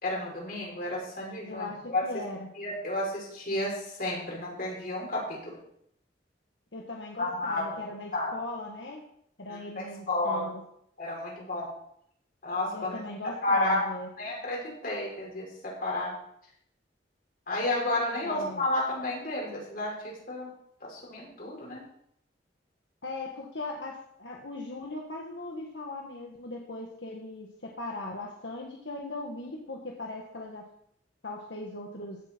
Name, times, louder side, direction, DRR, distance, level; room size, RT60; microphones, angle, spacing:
voice 1, 0.0-2.0 2.6-5.5 7.2-7.6 8.1-8.3 9.5-9.6 10.1-10.5 11.0-11.7 12.4-13.0 13.4-15.5 15.8-16.1 17.5-20.5 20.8-21.8, left 2 dB, 55° left, -3 dB, 5.3 m, -31 dB
voice 2, 1.5-2.5 6.7-9.0 9.4-10.6 12.7-14.1 18.2-18.6 23.0-30.7 31.2-32.2, left 2 dB, 85° left, -1 dB, 1.6 m, -39 dB
16.5 x 7.7 x 4.5 m, 0.71 s
head